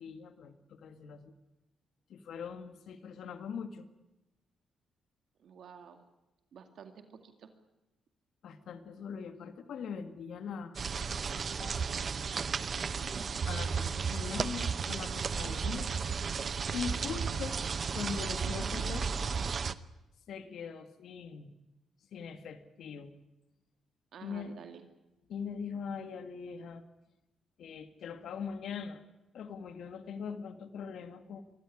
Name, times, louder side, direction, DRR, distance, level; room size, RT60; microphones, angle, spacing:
voice 1, 0.0-1.3 2.1-3.9 8.4-10.8 11.3-11.8 13.5-15.9 16.3-16.4 16.7-17.6 17.9-19.1 20.3-21.5 22.1-23.1 24.2-24.5 25.3-26.8 27.6-29.0 29.3-31.4, left 6 dB, 65° left, 9 dB, 1.9 m, -41 dB
voice 2, 5.4-6.1 6.5-7.5 24.1-24.9, right 7 dB, 60° right, 7 dB, 2.2 m, -51 dB
sound 1, 10.7-19.7, right 5 dB, 40° right, 0.8 m, -34 dB
24.0 x 15.0 x 9.9 m, 0.97 s
cardioid pair, 135°, 0 cm